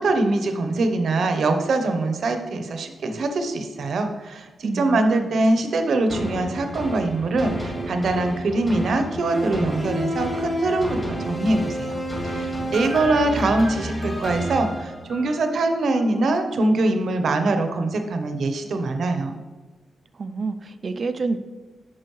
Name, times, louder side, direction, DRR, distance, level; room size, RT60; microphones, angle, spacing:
voice 1, 0.0-12.0 12.2-19.4, right 2 dB, 60° right, 6 dB, 0.8 m, -23 dB
voice 2, 4.6-5.3 20.1-21.4, right 4 dB, 35° right, 11 dB, 0.4 m, -28 dB
sound 1, 6.1-15.5 16.0-16.1, equal, 25° left, 1.8 m, -30 dB
9.1 x 6.0 x 3.1 m, 1.3 s
wide cardioid pair, 150°, 0 cm